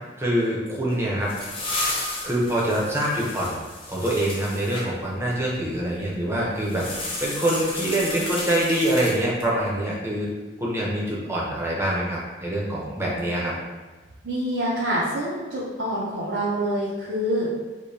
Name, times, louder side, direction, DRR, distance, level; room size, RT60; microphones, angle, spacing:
voice 1, 0.2-1.3 2.2-6.8 7.2-10.3 10.6-13.5, right 1 dB, 15° right, -5 dB, 0.7 m, -25 dB
sound 1, 0.9-4.9 6.6-9.5, left 2 dB, 30° left, 0.6 m, -33 dB
voice 2, 14.2-17.5, equal, 80° right, -7 dB, 0.6 m, -26 dB
5.0 x 2.2 x 2.7 m, 1.3 s
head